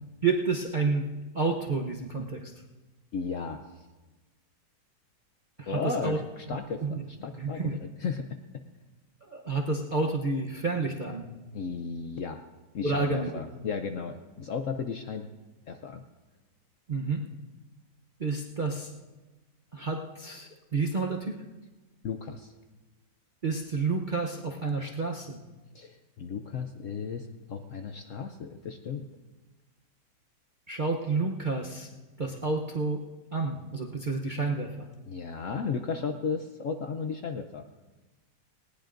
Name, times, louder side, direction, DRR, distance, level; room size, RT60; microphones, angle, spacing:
voice 1, 0.2-1.1 1.3-2.5 5.6-6.2 6.5-7.0 7.3-7.8 9.2-11.3 12.8-13.3 16.9-17.2 18.2-18.9 19.7-21.4 23.4-25.4 30.7-31.9 32.2-33.0 33.3-34.9, right 3 dB, 40° right, 0 dB, 0.7 m, -30 dB
voice 2, 3.1-3.6 5.7-8.6 11.5-12.4 12.7-15.3 15.7-16.0 22.0-22.5 25.7-29.1 35.1-37.6, left 5 dB, 65° left, 6 dB, 0.8 m, -35 dB
19.5 x 18.5 x 2.6 m, 1.2 s
omnidirectional pair, 1.9 m